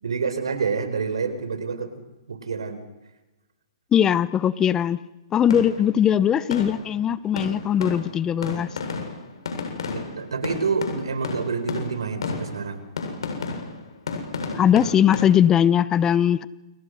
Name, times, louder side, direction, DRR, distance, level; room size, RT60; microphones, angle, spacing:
voice 1, 0.0-2.8 9.9-12.8, right 5 dB, 85° right, 11 dB, 4.6 m, -28 dB
voice 2, 3.9-5.0 5.3-8.7 14.5-16.4, left 9 dB, 20° left, 17 dB, 0.9 m, -20 dB
sound 1, 5.5-6.0 6.5-7.1 7.4-15.2, left 4 dB, 75° left, 7.7 m, -32 dB
29.5 x 28.0 x 6.5 m, 1.1 s
hypercardioid pair, 130°, 3 cm